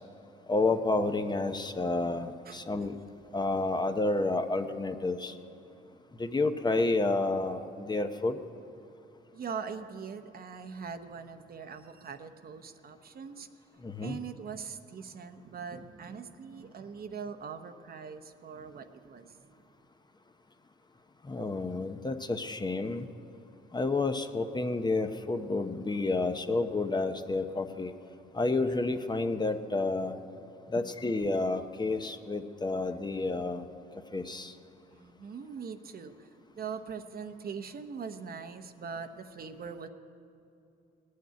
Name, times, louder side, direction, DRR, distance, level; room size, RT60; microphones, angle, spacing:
voice 1, 0.5-3.0 3.3-5.3 6.2-8.4 13.8-14.2 21.3-23.1 23.7-27.9 28.3-30.1 30.7-33.6 34.1-34.5, left 3 dB, 20° left, 8 dB, 0.8 m, -30 dB
voice 2, 9.3-13.5 14.0-19.5 30.8-30.9 34.9-36.3 36.5-39.9, right 6 dB, 50° right, 8 dB, 0.9 m, -42 dB
19.0 x 6.6 x 9.3 m, 2.7 s
cardioid pair, 90°, 20 cm